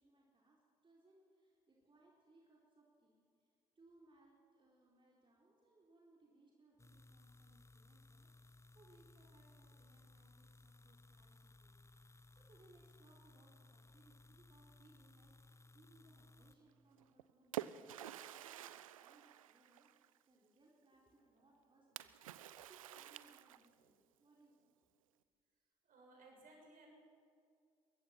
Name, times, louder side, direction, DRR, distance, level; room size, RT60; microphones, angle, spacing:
voice 1, 0.0-3.5 3.8-24.7, right 2 dB, 30° right, -3 dB, 4.3 m, -69 dB
sound 1, 6.8-16.6, left 2 dB, 15° left, 1.2 m, -63 dB
Splash splatter, 17.0-20.2 22.0-23.9, right 12 dB, 80° right, 0.5 m, -49 dB
voice 2, 25.8-26.9, right 2 dB, 55° right, 0 dB, 6.6 m, -61 dB
23.5 x 22.0 x 6.1 m, 2.3 s
figure-of-eight pair, 40°, 17 cm